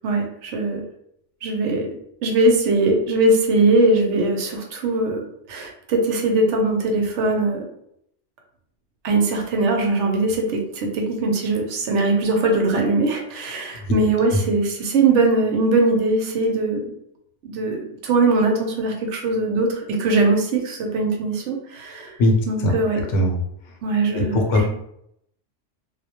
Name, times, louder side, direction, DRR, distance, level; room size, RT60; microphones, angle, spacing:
voice 1, 0.0-0.8 1.4-1.9 2.2-5.2 5.5-7.6 9.0-16.8 17.4-22.1 22.5-23.0 23.8-24.7, right 2 dB, 75° right, 2 dB, 0.9 m, -21 dB
voice 2, 24.1-24.7, left 1 dB, 75° left, 1 dB, 0.9 m, -19 dB
2.2 x 2.1 x 2.8 m, 0.74 s
omnidirectional pair, 1.3 m